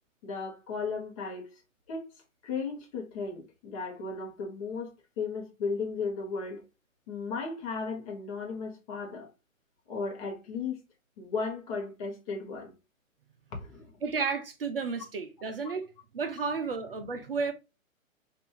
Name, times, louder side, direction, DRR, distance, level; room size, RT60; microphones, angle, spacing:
voice 1, 0.2-1.6 1.9-2.1 2.4-6.6 7.1-9.3 9.9-10.8 11.2-12.7 13.5-13.9, left 4 dB, 25° left, 1.0 m, -35 dB
voice 2, 14.0-15.9 16.1-17.5, right 5 dB, 45° right, 0.6 m, -32 dB
5.3 x 2.6 x 2.9 m
figure-of-eight pair, 125°, 41 cm